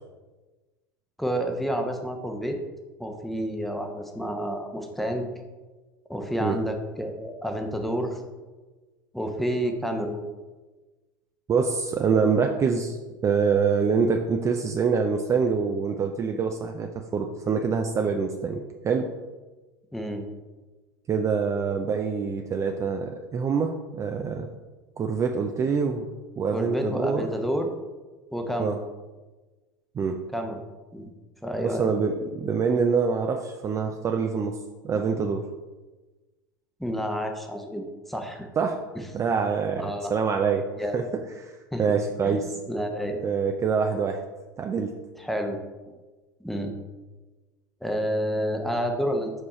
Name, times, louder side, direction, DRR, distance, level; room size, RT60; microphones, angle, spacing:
voice 1, 1.2-2.6 3.0-5.3 6.1-8.2 9.1-10.2 19.9-20.2 26.5-27.7 28.3-28.8 30.3-30.6 30.9-31.1 31.4-31.9 36.8-38.5 38.9-39.0 39.8-40.1 40.8-41.0 41.7-41.8 42.2-42.4 42.7-43.2 45.2-45.6 46.4-46.7 47.8-49.3, equal, ahead, 4 dB, 0.8 m, -29 dB
voice 2, 11.5-13.0 13.2-19.1 21.1-24.5 25.0-26.1 26.4-27.3 28.6-28.8 29.9-30.2 31.6-34.6 34.8-35.5 38.6-38.8 39.1-42.6 43.2-44.2 44.6-45.0, right 5 dB, 25° right, 4 dB, 0.4 m, -25 dB
4.8 x 4.7 x 4.2 m, 1.2 s
hypercardioid pair, 85°, 11 cm